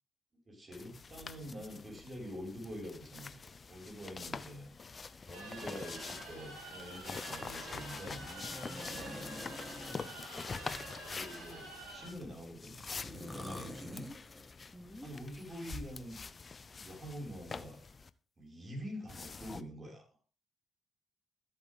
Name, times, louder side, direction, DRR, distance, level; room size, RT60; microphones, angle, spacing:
voice 1, 0.5-4.7 5.3-8.2 8.8-9.5 10.3-10.5 11.1-12.7 13.0-14.0 15.0-16.2 16.7-17.8 18.4-20.1, equal, 35° right, -1 dB, 5.7 m, -46 dB
sound 1, 0.7-18.1 19.1-19.6, left 4 dB, 40° left, 0.6 m, -46 dB
sound 2, 5.3-12.1, right 2 dB, 85° right, 4.0 m, -48 dB
sound 3, 8.1-10.2 10.7-12.0 12.7-14.8 15.3-16.2, left 2 dB, 20° left, 1.8 m, -48 dB
voice 2, 8.7-9.4 13.8-14.2 14.7-15.1, equal, 5° left, -2 dB, 3.7 m, -52 dB
13.5 x 8.2 x 3.7 m, 0.39 s
hypercardioid pair, 45°, 0 cm